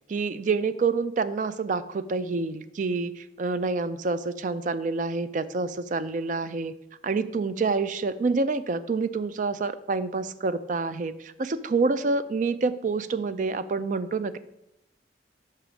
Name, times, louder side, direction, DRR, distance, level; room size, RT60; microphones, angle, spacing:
voice 1, 0.1-6.7 7.0-14.4, right 4 dB, 45° right, 13 dB, 0.4 m, -27 dB
5.6 x 5.1 x 6.0 m, 0.86 s
head